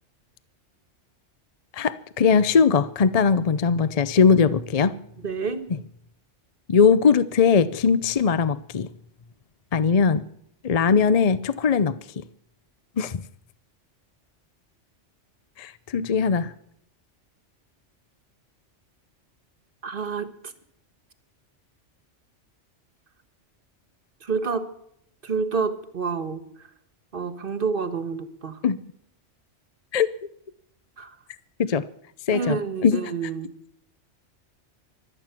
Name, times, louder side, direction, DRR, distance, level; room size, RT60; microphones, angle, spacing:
voice 1, 1.7-4.9 6.7-8.9 9.7-10.2 10.6-11.9 13.0-13.1 15.6-16.5 28.6-28.8 29.9-30.1 31.6-31.8 32.3-32.6 32.8-33.1, left 6 dB, 40° left, 15 dB, 0.6 m, -20 dB
voice 2, 5.2-5.6 16.0-16.1 19.8-20.5 24.2-24.6 25.2-26.4 27.1-28.6 31.0-31.1 32.3-33.5, right 5 dB, 50° right, 10 dB, 1.6 m, -28 dB
24.0 x 9.1 x 6.0 m, 0.71 s
omnidirectional pair, 1.2 m